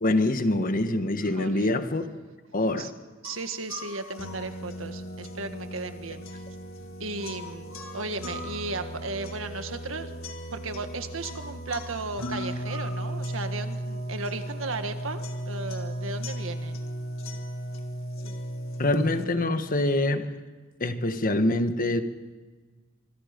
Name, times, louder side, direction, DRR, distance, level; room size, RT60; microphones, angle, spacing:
voice 1, 0.0-2.1 2.5-2.9 18.8-20.3 20.8-22.0, left 1 dB, 45° left, 9 dB, 1.4 m, -25 dB
voice 2, 1.4-1.7 2.8-2.9 3.2-6.4 7.0-10.1 10.5-16.8, right 3 dB, 80° right, 8 dB, 1.7 m, -35 dB
sound 1, 3.2-19.2, equal, 80° left, 2.1 m, -36 dB
25.5 x 25.5 x 5.3 m, 1.4 s
head